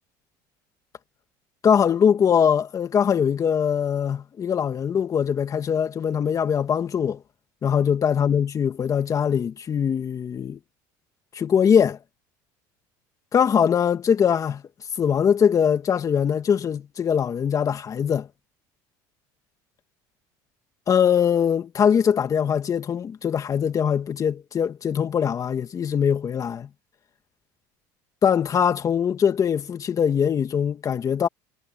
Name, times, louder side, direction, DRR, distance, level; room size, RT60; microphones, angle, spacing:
voice 1, 1.6-7.2 7.6-10.6 11.3-12.0 13.3-14.6 15.0-18.3 20.9-26.7 28.2-31.3, left 7 dB, 35° left, 2.3 m, -22 dB
supercardioid pair, 100°, 9 cm